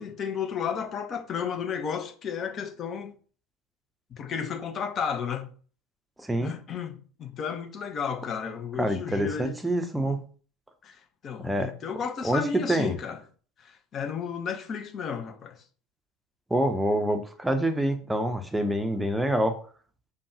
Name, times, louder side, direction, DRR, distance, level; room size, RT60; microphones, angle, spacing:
voice 1, 0.0-3.1 4.1-5.5 6.4-9.6 10.0-10.1 10.8-11.0 11.2-13.2 13.6-15.6, left 6 dB, 35° left, 0.6 m, -33 dB
voice 2, 6.2-6.5 8.8-10.2 11.4-11.7 12.2-13.0 16.5-19.6, right 1 dB, 5° right, 0.6 m, -26 dB
5.2 x 2.3 x 2.7 m
figure-of-eight pair, 70°, 0 cm